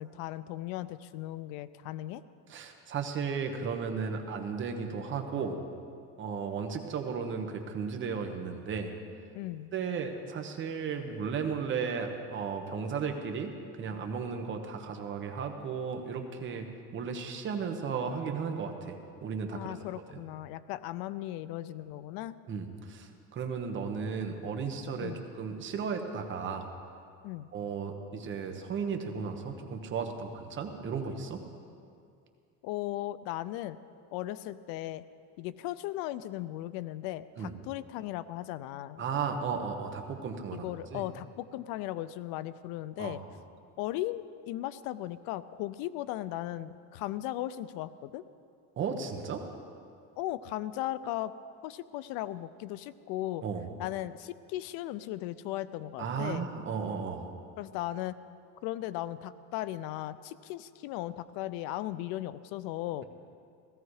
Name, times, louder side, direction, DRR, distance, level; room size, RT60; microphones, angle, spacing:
voice 1, 0.0-2.2 9.3-9.7 19.5-22.3 25.0-25.2 27.2-27.5 32.6-33.8 34.1-35.0 35.4-39.0 40.5-43.2 43.8-48.2 50.2-51.3 51.6-53.4 53.8-56.5 57.6-58.2 58.6-63.0, left 14 dB, 75° left, 15 dB, 0.6 m, -37 dB
voice 2, 2.5-5.6 6.2-8.9 9.7-13.5 13.8-16.7 16.9-19.0 19.2-19.7 22.5-26.7 27.5-31.4 37.4-37.5 39.0-41.0 43.0-43.2 48.8-49.4 53.4-53.7 56.0-57.3, right 6 dB, 35° right, 5 dB, 1.2 m, -35 dB
16.5 x 14.0 x 4.8 m, 2.4 s
cardioid pair, 160°, 36 cm